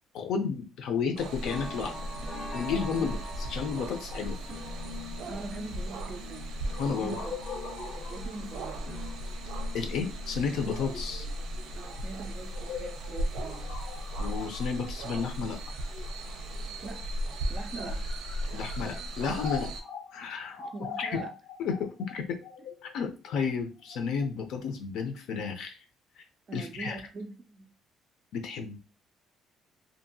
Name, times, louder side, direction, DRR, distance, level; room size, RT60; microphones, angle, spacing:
voice 1, 0.1-2.0 2.5-3.2 3.5-4.4 6.8-7.1 9.7-11.3 14.2-15.7 18.5-19.7 20.1-20.6 21.0-21.2 21.6-22.4 22.8-25.8 26.5-27.0 28.3-28.8, left 6 dB, 70° left, 0.6 m, -32 dB
sound 1, 1.0-13.1 13.5-15.1 15.4-15.8 16.1-16.2, left 2 dB, 15° left, 0.6 m, -46 dB
sound 2, 1.2-19.8, right 1 dB, 90° right, 0.6 m, -37 dB
voice 2, 5.3-6.6 6.9-7.3 8.0-8.9 11.7-13.7 16.8-17.1 17.5-18.0 20.6-21.3 26.5-27.7, right 3 dB, 30° right, 0.3 m, -42 dB
sound 3, 6.7-16.6 17.3-24.3, left 6 dB, 85° left, 0.9 m, -44 dB
2.8 x 2.5 x 2.6 m
cardioid pair, 170°, 0 cm